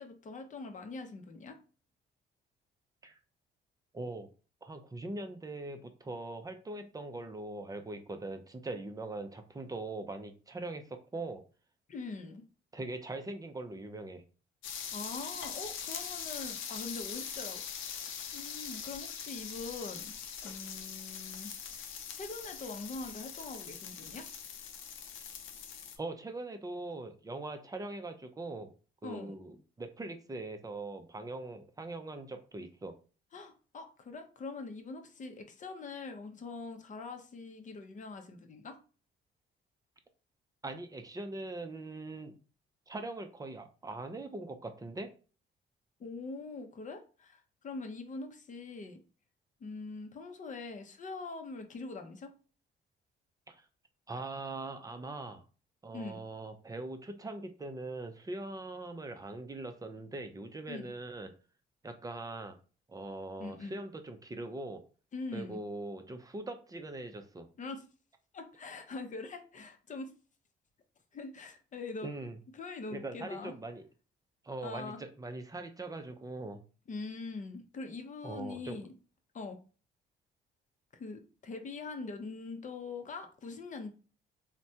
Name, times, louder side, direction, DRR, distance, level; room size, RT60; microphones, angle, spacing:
voice 1, 0.0-1.6 11.9-12.4 14.9-20.1 20.4-21.5 22.1-24.3 29.0-29.4 33.3-38.8 46.0-49.0 49.6-52.3 55.9-56.2 60.7-60.9 63.4-63.8 65.1-65.6 67.6-67.8 68.3-70.1 71.1-72.1 72.5-73.5 74.6-75.0 76.9-78.9 79.3-79.6 80.9-83.9, left 3 dB, 40° left, 0.6 m, -43 dB
voice 2, 3.9-4.3 4.6-11.4 12.7-14.2 26.0-28.7 29.0-32.9 40.6-42.3 42.9-45.1 53.5-53.6 54.1-55.4 55.8-61.3 61.8-62.6 62.9-64.8 65.3-67.5 72.0-72.4 72.9-73.8 74.4-76.6 78.2-78.8, right 2 dB, 20° right, 0.5 m, -41 dB
sound 1, 14.6-26.0, left 7 dB, 85° left, 0.5 m, -42 dB
3.2 x 2.2 x 2.7 m
cardioid pair, 90°, 20 cm